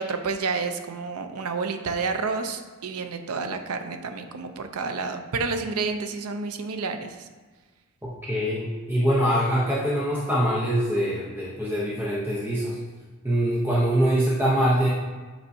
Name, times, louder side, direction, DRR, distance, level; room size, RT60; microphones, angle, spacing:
voice 1, 0.0-7.3, right 4 dB, 85° right, 7 dB, 0.6 m, -30 dB
voice 2, 8.0-12.8 13.2-14.9, equal, 10° right, -7 dB, 0.7 m, -24 dB
8.1 x 4.5 x 2.7 m, 1.4 s
head